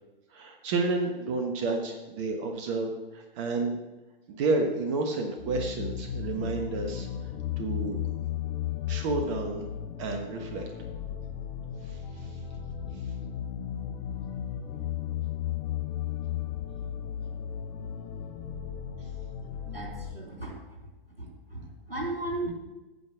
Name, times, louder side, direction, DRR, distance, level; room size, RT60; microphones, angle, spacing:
voice 1, 0.3-3.8 4.3-7.1 7.6-8.0 8.9-9.6 10.0-10.7 11.9-12.3, right 3 dB, 30° right, 4 dB, 1.2 m, -30 dB
sound 1, 5.4-20.1, left 10 dB, 30° left, 0.9 m, -35 dB
voice 2, 19.6-20.8 21.2-22.5, right 2 dB, 90° right, -2 dB, 3.3 m, -36 dB
9.2 x 6.7 x 6.2 m, 1.1 s
figure-of-eight pair, 115°, 29 cm